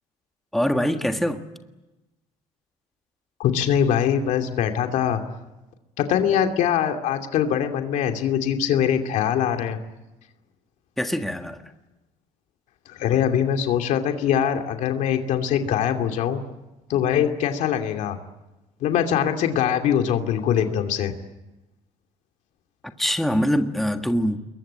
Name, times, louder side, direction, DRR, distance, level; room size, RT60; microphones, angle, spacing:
voice 1, 0.5-1.4 11.0-11.6 23.0-24.4, equal, ahead, 1.6 m, -23 dB
voice 2, 3.4-5.2 6.0-9.8 12.9-16.4 16.9-18.2 18.8-21.1, left 9 dB, 70° left, 2.6 m, -22 dB
27.5 x 22.0 x 8.7 m
cardioid pair, 140°, 13 cm